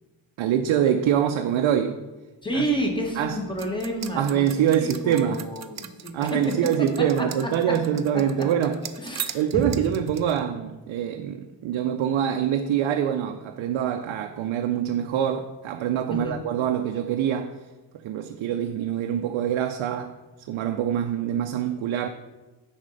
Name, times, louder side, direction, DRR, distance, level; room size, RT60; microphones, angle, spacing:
voice 1, 0.4-2.0 2.5-2.6 3.2-3.4 4.2-5.4 6.1-8.8 9.3-17.6 18.0-20.2 20.5-22.1, right 9 dB, 85° right, 0.5 m, -25 dB
voice 2, 2.4-6.4 9.0-9.7 16.1-16.4, right 1 dB, 10° left, 1.2 m, -30 dB
sound 1, 3.6-10.4, right 9 dB, 40° right, 0.4 m, -38 dB
9.7 x 4.4 x 3.9 m
wide cardioid pair, 125°, 46 cm